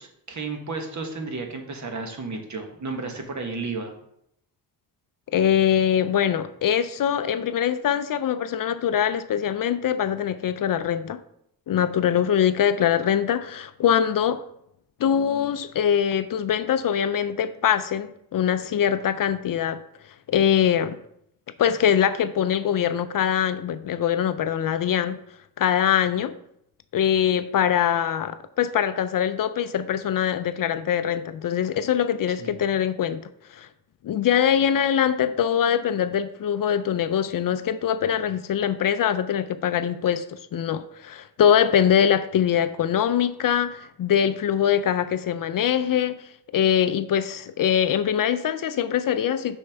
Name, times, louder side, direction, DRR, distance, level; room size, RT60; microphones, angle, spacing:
voice 1, 0.0-3.9 32.4-32.6, right 3 dB, 45° right, 1.3 m, -33 dB
voice 2, 5.3-11.2 11.7-14.4 15.0-19.8 20.3-21.0 21.6-25.2 25.6-26.4 26.9-33.7 34.0-49.6, left 9 dB, 55° left, 0.5 m, -23 dB
6.4 x 5.4 x 3.5 m
cardioid pair, 90°, 40 cm